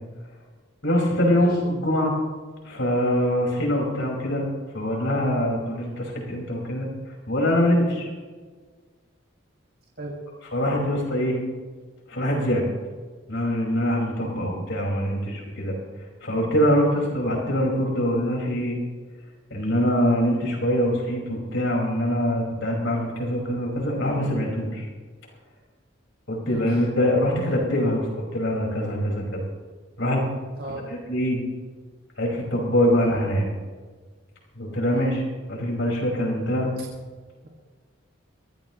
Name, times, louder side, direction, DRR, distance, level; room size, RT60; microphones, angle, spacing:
voice 1, 0.8-2.1 2.6-4.4 4.7-6.9 7.3-8.1 10.5-11.4 12.1-12.7 13.3-15.7 16.2-18.8 19.5-24.9 26.3-29.4 30.0-30.3 30.7-30.8 31.1-31.4 32.2-33.5 34.6-35.2 35.5-36.7, equal, 70° left, -1 dB, 5.2 m, -23 dB
voice 2, 26.4-26.8 30.6-30.9 36.8-36.9, right 1 dB, 55° right, -1 dB, 2.2 m, -37 dB
23.5 x 15.5 x 3.1 m, 1.5 s
head